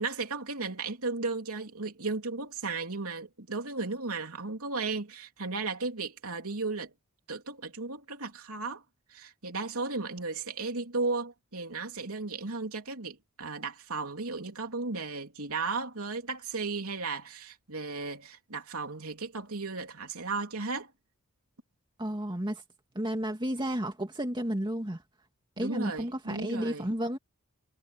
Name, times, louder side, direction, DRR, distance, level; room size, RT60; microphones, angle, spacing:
voice 1, 0.0-6.9 7.3-8.8 9.1-20.9 25.6-26.9, right 3 dB, 75° right, 3.3 m, -35 dB
voice 2, 22.0-22.6 22.9-25.0 25.6-27.2, equal, 20° right, 2.2 m, -32 dB
head